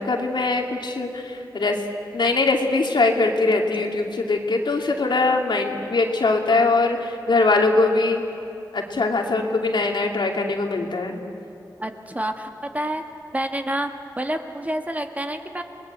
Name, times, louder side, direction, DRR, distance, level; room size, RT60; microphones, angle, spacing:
voice 1, 0.0-1.8 2.1-8.2 8.7-11.2, left 3 dB, 80° left, 1 dB, 2.7 m, -22 dB
voice 2, 11.8-13.0 13.3-13.9 14.2-15.6, right 1 dB, 20° right, 5 dB, 1.7 m, -28 dB
28.5 x 21.0 x 8.2 m, 2.8 s
wide cardioid pair, 95°, 8 cm